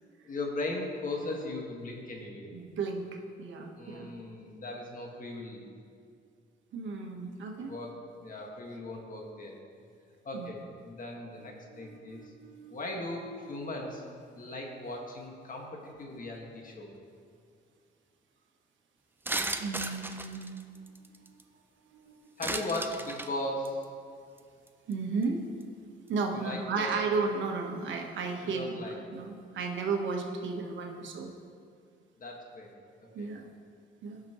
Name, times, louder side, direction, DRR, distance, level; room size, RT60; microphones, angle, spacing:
voice 1, 0.2-2.5 3.7-5.7 7.6-9.6 10.2-12.3 12.7-14.0 14.3-16.9 22.4-23.9 26.3-26.9 28.4-29.0 32.2-32.7 33.0-33.3, left 2 dB, 45° left, 0 dB, 1.7 m, -38 dB
voice 2, 2.5-3.1 3.4-4.1 6.7-7.7 10.3-10.5 11.7-12.8 19.6-20.4 21.9-22.3 24.9-25.4 26.1-31.3 33.1-33.4 34.0-34.2, right 4 dB, 70° right, 3 dB, 1.2 m, -34 dB
sound 1, 19.3-21.4 22.4-23.3 23.6-23.8 24.4-24.5 24.7-24.9 25.2-25.3, right 2 dB, 10° right, 0.5 m, -35 dB
16.5 x 5.9 x 3.0 m, 2.2 s
cardioid pair, 90°, 20 cm